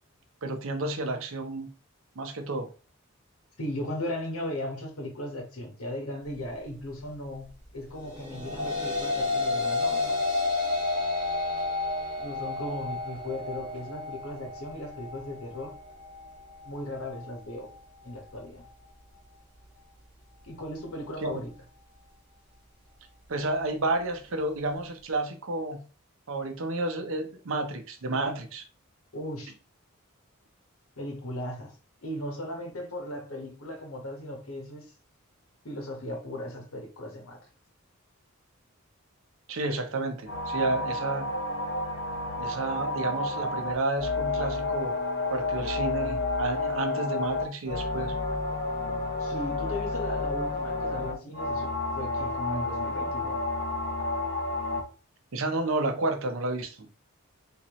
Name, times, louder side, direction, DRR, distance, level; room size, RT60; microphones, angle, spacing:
voice 1, 0.4-1.7 2.2-2.7 21.2-21.4 23.3-25.9 26.3-28.6 39.5-41.3 42.4-45.0 45.3-48.1 55.3-56.9, right 2 dB, 65° right, 0.6 m, -31 dB
voice 2, 3.6-10.2 12.2-15.7 16.6-17.7 18.0-18.6 20.4-21.5 29.1-29.5 31.0-31.7 32.0-34.9 35.6-37.4 49.2-53.4, left 1 dB, 80° left, 1.3 m, -37 dB
sound 1, 8.1-17.3, left 3 dB, 25° right, 1.2 m, -31 dB
sound 2, 40.3-54.8, left 2 dB, 55° left, 1.1 m, -30 dB
3.5 x 2.8 x 3.0 m
head